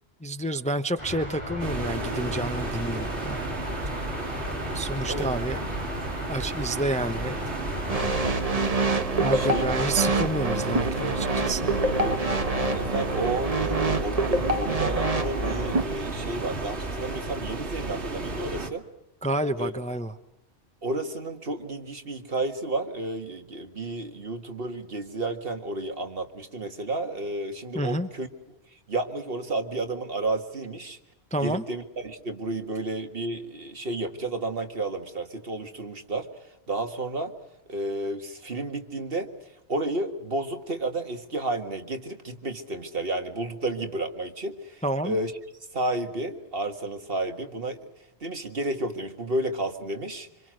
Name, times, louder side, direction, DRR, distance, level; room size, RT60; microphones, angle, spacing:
voice 1, 0.2-3.6 4.7-5.6 6.3-7.4 9.2-11.7 19.2-20.1 27.7-28.1 31.3-31.6 44.8-45.1, right 1 dB, 5° left, 9 dB, 0.8 m, -29 dB
sound 1, 1.0-8.3, left 1 dB, 25° left, 6.9 m, -35 dB
sound 2, 1.6-18.7, right 2 dB, 80° right, 2.3 m, -33 dB
sound 3, 7.9-15.8, right 2 dB, 35° right, 1.4 m, -26 dB
voice 2, 9.3-9.8 11.7-18.8 19.6-19.7 20.8-28.3 28.9-31.0 31.4-37.3 37.7-39.3 39.7-45.3 45.7-47.8 48.2-50.3, right 2 dB, 55° right, 6 dB, 2.0 m, -32 dB
26.0 x 26.0 x 6.4 m, 0.88 s
omnidirectional pair, 1.1 m